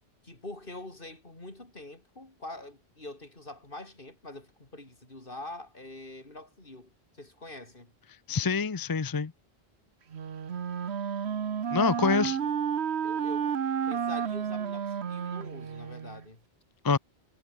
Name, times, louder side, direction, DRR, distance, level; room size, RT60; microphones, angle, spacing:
voice 1, 0.2-7.9 12.0-12.6 13.0-13.5 13.9-16.4, left 2 dB, 55° left, 4.6 m, -44 dB
voice 2, 8.3-9.3 11.7-12.4 16.8-17.0, left 5 dB, 25° left, 0.5 m, -26 dB
Wind instrument woodwind instrument, 10.1-16.2, right 7 dB, 90° right, 1.3 m, -31 dB
omnidirectional pair, 1.1 m